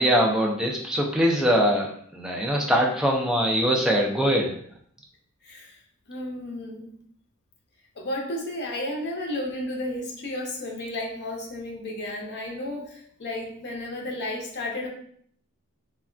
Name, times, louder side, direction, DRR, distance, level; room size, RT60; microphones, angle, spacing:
voice 1, 0.0-1.9 2.1-4.5, equal, 5° right, -1 dB, 0.4 m, -22 dB
voice 2, 5.4-5.8 6.1-6.9 8.0-14.9, left 1 dB, 50° left, 0 dB, 0.6 m, -33 dB
3.3 x 2.2 x 2.5 m, 0.62 s
head